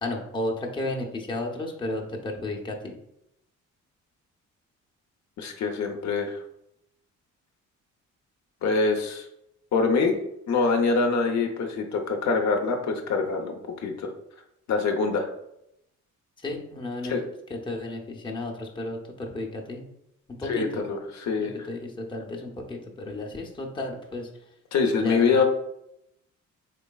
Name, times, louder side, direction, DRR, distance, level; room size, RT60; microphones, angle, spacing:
voice 1, 0.0-2.9 16.4-17.2 17.5-19.8 20.4-20.9 21.4-24.3 25.0-25.3, left 2 dB, 15° left, 0 dB, 0.6 m, -33 dB
voice 2, 5.4-6.4 8.6-9.3 9.7-10.2 10.5-14.1 14.7-15.3 17.1-17.2 20.4-21.5 24.7-25.4, left 4 dB, 65° left, 3 dB, 0.6 m, -24 dB
3.9 x 3.1 x 2.3 m, 0.79 s
cardioid pair, 90°, 30 cm